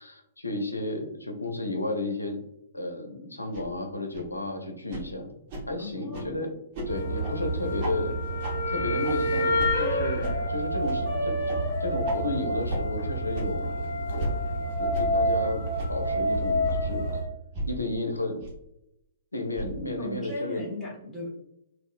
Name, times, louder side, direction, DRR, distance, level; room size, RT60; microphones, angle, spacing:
voice 1, 0.0-2.4 2.7-5.3 5.7-6.5 6.9-8.1 8.7-13.7 14.1-14.4 14.8-15.6 15.9-17.0 17.6-18.4 19.3-20.6, left 2 dB, 80° left, 4 dB, 0.5 m, -32 dB
sound 1, 3.5-3.6 4.1-4.2 4.9-5.0 5.5-5.6 6.1-6.3 6.7-6.9 7.2-7.3 7.8-7.9 8.4-8.5 9.0-9.1 9.6-9.7 10.2-10.3 10.8-11.0 11.5-11.6 12.0-12.2 12.7-12.8 13.3-13.5 14.2-14.3 14.9-15.0 15.8-15.9 16.6-16.8 17.5-17.7 18.4-18.5 19.5-19.7, right 1 dB, 35° right, 1.0 m, -33 dB
voice 2, 5.8-6.5 19.9-21.3, left 2 dB, ahead, -7 dB, 1.1 m, -37 dB
sound 2, 6.9-17.2, equal, 45° left, 0.8 m, -28 dB
3.6 x 2.3 x 2.4 m, 0.82 s
figure-of-eight pair, 115°, 0 cm